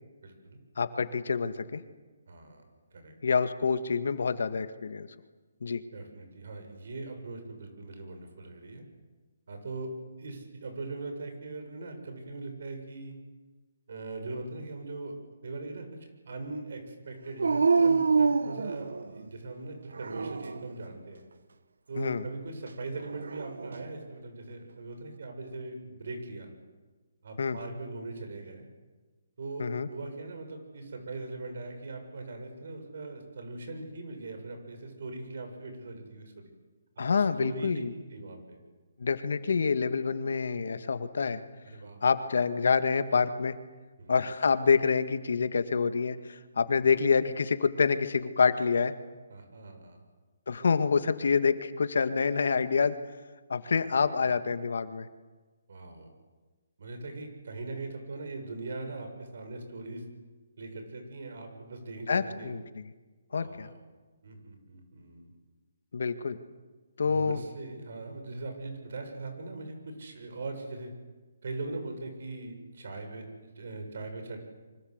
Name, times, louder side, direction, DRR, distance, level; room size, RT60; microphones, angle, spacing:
voice 1, 0.2-0.6 2.3-2.7 2.9-3.1 5.9-8.8 9.5-9.9 10.2-13.1 13.9-15.1 15.4-21.2 21.9-26.5 27.2-28.6 29.4-36.5 37.2-37.8 38.1-38.6 41.6-42.0 44.0-44.2 46.6-46.9 49.3-50.0 54.2-54.3 55.7-56.1 56.8-60.0 60.6-62.6 63.3-63.8 64.2-65.3 67.0-70.9 71.4-74.4, right 3 dB, 65° right, 5 dB, 7.4 m, -40 dB
voice 2, 0.8-1.8 3.2-5.1 5.6-5.8 22.0-22.2 27.4-27.6 29.6-29.9 37.0-37.9 39.0-41.4 42.0-43.6 44.1-48.9 50.5-53.0 53.5-55.1 62.1-62.8 63.3-63.7 65.9-66.4 67.0-67.4, left 5 dB, 70° left, 10 dB, 1.9 m, -27 dB
Dog, 17.4-19.3 19.9-20.7 23.0-23.9, right 4 dB, 85° right, 1.4 m, -26 dB
26.0 x 25.0 x 8.2 m, 1.3 s
hypercardioid pair, 160°, 0 cm